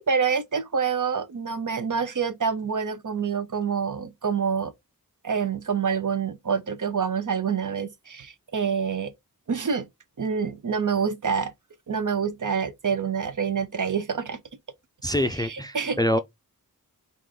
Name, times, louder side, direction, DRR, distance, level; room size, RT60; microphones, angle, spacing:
voice 1, 0.0-4.7 5.2-9.1 9.5-9.9 10.2-11.5 11.9-14.4 15.3-16.2, right 6 dB, 60° right, 0.6 m, -27 dB
voice 2, 15.0-16.2, left 1 dB, 10° left, 0.4 m, -25 dB
3.7 x 2.5 x 3.2 m
wide cardioid pair, 45°, 36 cm